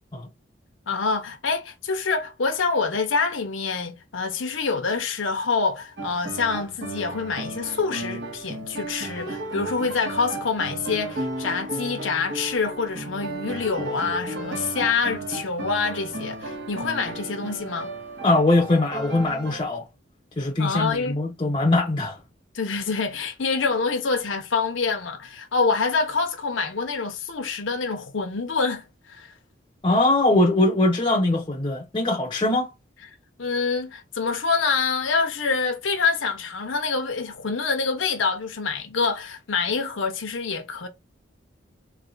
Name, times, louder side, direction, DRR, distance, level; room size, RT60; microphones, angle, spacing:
voice 1, 0.9-17.9 20.6-21.2 22.5-29.3 33.4-40.9, left 4 dB, 85° left, 0.8 m, -26 dB
sound 1, 6.0-19.6, right 2 dB, 60° right, 1.4 m, -34 dB
voice 2, 18.2-19.8 20.4-22.2 29.8-32.7, left 2 dB, 25° left, 0.6 m, -21 dB
3.2 x 3.2 x 3.8 m
head